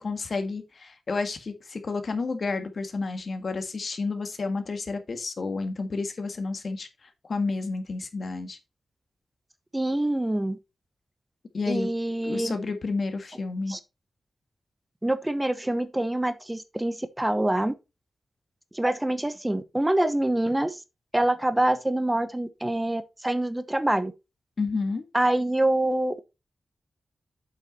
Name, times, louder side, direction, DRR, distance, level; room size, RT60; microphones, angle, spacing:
voice 1, 0.0-8.6 11.5-11.9 12.2-13.8 24.6-25.1, left 3 dB, 60° left, 1.7 m, -30 dB
voice 2, 9.7-10.6 11.7-12.6 13.7-13.8 15.0-17.7 18.7-20.8 21.1-24.1 25.1-26.2, right 1 dB, 15° right, 1.0 m, -25 dB
7.9 x 5.5 x 4.1 m
cardioid pair, 50°, 0 cm